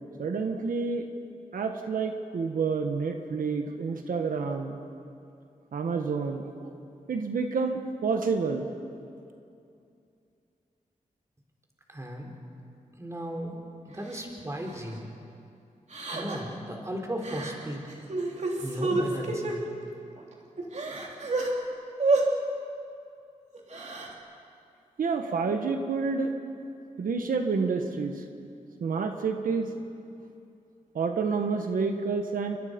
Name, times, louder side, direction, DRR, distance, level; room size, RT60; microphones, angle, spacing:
voice 1, 0.2-1.1 1.5-4.8 5.7-6.7 7.1-8.7 25.0-26.3 27.0-28.2 28.8-29.7 30.9-32.6, right 4 dB, 85° right, 5 dB, 1.4 m, -29 dB
voice 2, 11.9-12.3 13.0-13.6 13.8-15.0 16.1-17.9 18.6-19.6, equal, 20° right, 0 dB, 4.0 m, -35 dB
Crying sobbing, 14.1-14.2 14.7-14.9 15.9-16.5 17.2-17.5 17.9-19.6 20.2-20.3 20.6-21.5 22.0-22.2 23.5-24.1, right 3 dB, 55° right, 3.4 m, -29 dB
28.5 x 22.5 x 5.3 m, 2.6 s
wide cardioid pair, 90°, 14 cm